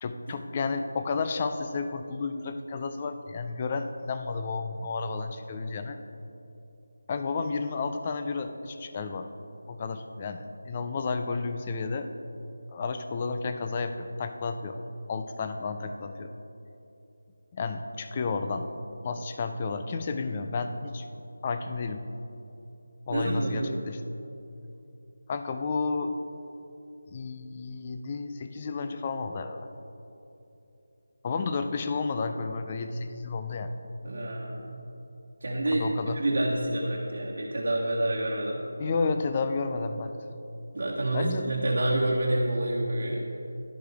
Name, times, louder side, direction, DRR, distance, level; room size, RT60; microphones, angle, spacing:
voice 1, 0.0-6.0 7.1-9.3 9.7-12.1 12.7-14.8 15.1-16.3 17.5-18.7 19.0-21.0 21.4-22.0 23.1-24.0 25.3-26.1 27.1-29.6 31.2-33.7 35.7-36.2 38.8-40.4 41.1-41.5, left 4 dB, 25° left, 8 dB, 0.5 m, -31 dB
voice 2, 23.1-23.8 34.0-34.8 35.4-38.6 40.7-43.3, right 1 dB, 65° right, -4 dB, 1.3 m, -28 dB
11.5 x 10.5 x 3.5 m, 2.9 s
figure-of-eight pair, 170°, 0 cm